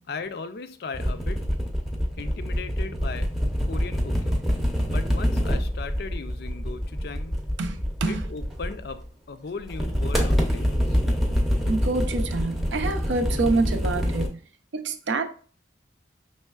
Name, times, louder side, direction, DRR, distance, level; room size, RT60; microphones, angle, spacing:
voice 1, 0.1-1.4 2.2-3.3 3.7-4.4 4.9-7.4 8.0-9.0 9.3-11.0, left 4 dB, 55° left, 9 dB, 0.4 m, -37 dB
sound 1, 0.9-9.0 9.7-14.3, equal, ahead, 0.5 m, -26 dB
voice 2, 7.6-8.2 11.7-14.4 14.7-15.2, right 3 dB, 75° right, 8 dB, 0.5 m, -26 dB
5.4 x 3.1 x 2.3 m, 0.43 s
head